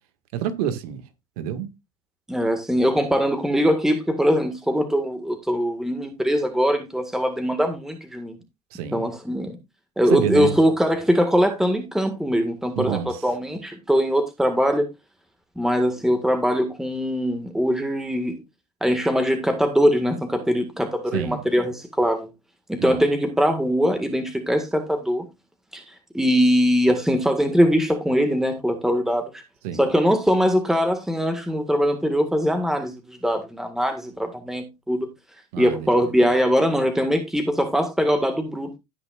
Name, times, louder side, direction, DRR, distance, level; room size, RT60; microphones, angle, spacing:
voice 1, 0.3-1.0 1.4-1.7 8.7-9.1 10.1-10.5 12.7-13.1 21.1-21.4 22.8-23.0 29.6-29.8 35.5-35.9, right 10 dB, 70° right, 1.8 m, -27 dB
voice 2, 2.3-8.4 8.9-9.6 10.0-14.9 15.5-18.4 18.8-22.3 22.7-25.3 25.7-29.4 29.7-35.1 35.6-38.8, equal, ahead, 1.6 m, -22 dB
16.0 x 5.9 x 2.4 m
supercardioid pair, 105°, 20 cm